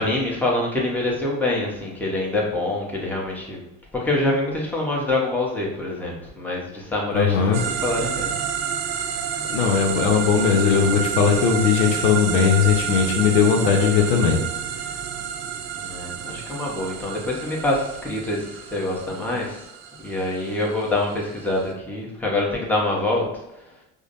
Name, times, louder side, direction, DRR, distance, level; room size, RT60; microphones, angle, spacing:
voice 1, 0.0-3.7 3.9-8.3 15.8-19.7 20.0-23.4, left 2 dB, 5° left, -3 dB, 1.0 m, -25 dB
voice 2, 7.1-7.6 9.5-14.4, left 6 dB, 75° left, 2 dB, 0.7 m, -19 dB
sound 1, 7.5-21.7, right 8 dB, 70° right, 0.6 m, -30 dB
4.9 x 2.2 x 2.5 m, 0.91 s
hypercardioid pair, 75°, 38 cm